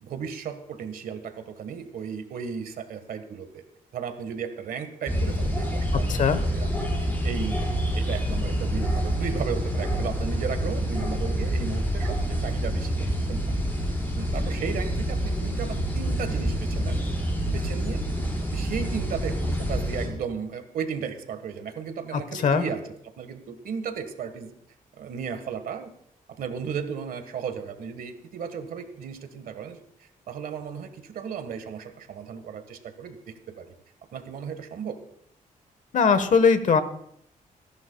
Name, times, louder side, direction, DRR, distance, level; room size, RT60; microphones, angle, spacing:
voice 1, 0.0-3.6 3.9-7.6 7.9-12.9 13.3-13.4 14.2-17.0 17.5-18.0 18.5-24.5 25.0-25.9 26.3-33.7 34.1-35.0, right 6 dB, 85° right, 8 dB, 1.5 m, -35 dB
sound 1, 5.1-20.1, equal, 15° left, 5.1 m, -27 dB
voice 2, 5.9-6.4 22.1-22.6 35.9-36.8, left 5 dB, 60° left, 11 dB, 1.2 m, -21 dB
30.0 x 11.0 x 2.3 m, 0.71 s
cardioid pair, 105°, 15 cm